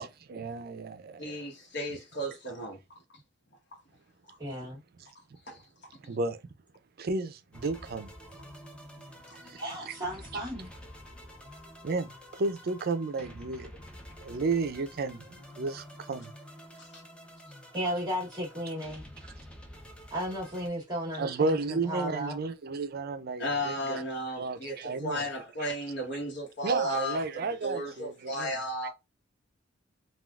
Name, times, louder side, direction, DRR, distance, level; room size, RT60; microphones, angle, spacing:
voice 1, 0.0-1.4 6.1-6.4 7.0-8.1 9.4-10.0 11.8-13.7 14.2-16.3 21.1-24.0 24.4-25.3 26.6-28.6 28.8-28.9, right 3 dB, 55° right, 0.5 m, -33 dB
voice 2, 1.2-2.8 5.5-5.6 9.3-9.4 16.8-17.0 23.4-28.9, equal, 60° left, 1.0 m, -34 dB
voice 3, 4.4-4.8 9.5-10.7 17.7-19.0 20.1-22.4, equal, 20° right, 1.1 m, -34 dB
sound 1, 7.5-20.7, equal, 5° left, 0.7 m, -49 dB
3.5 x 2.3 x 2.3 m
head